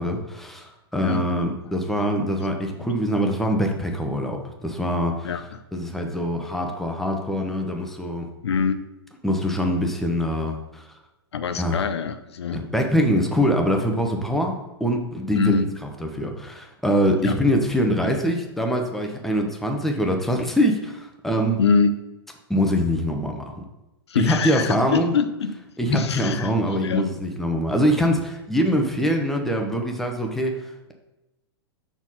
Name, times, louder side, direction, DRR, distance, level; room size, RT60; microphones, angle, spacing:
voice 1, 0.0-5.3 5.7-8.3 9.2-10.9 11.6-11.8 12.5-15.7 16.0-21.6 22.5-23.5 24.2-25.1 25.8-30.9, equal, ahead, 2 dB, 1.0 m, -24 dB
voice 2, 8.4-8.8 11.3-12.6 15.3-15.7 17.2-17.4 21.6-21.9 24.1-25.6 25.9-26.5 26.8-27.1, left 6 dB, 80° left, 9 dB, 0.5 m, -24 dB
5.9 x 4.5 x 5.5 m, 0.97 s
hypercardioid pair, 115°, 14 cm